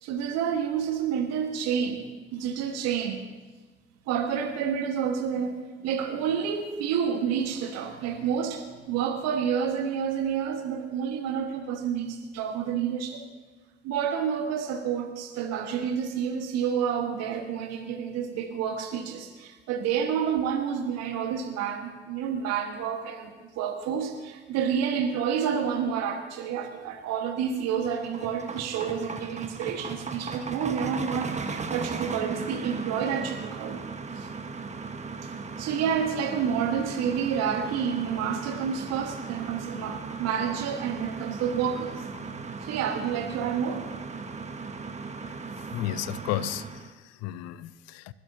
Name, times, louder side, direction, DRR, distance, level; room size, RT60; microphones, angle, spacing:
voice 1, 0.0-2.0 2.3-3.2 4.1-13.2 13.8-23.3 23.6-33.8 34.1-34.3 35.6-43.8, right 7 dB, 60° right, 4 dB, 1.6 m, -29 dB
sound 1, 27.5-46.9, right 4 dB, 25° right, 1.4 m, -37 dB
voice 2, 45.7-48.1, left 13 dB, 60° left, 18 dB, 0.7 m, -33 dB
29.0 x 12.5 x 2.9 m, 1.3 s
figure-of-eight pair, 50°, 29 cm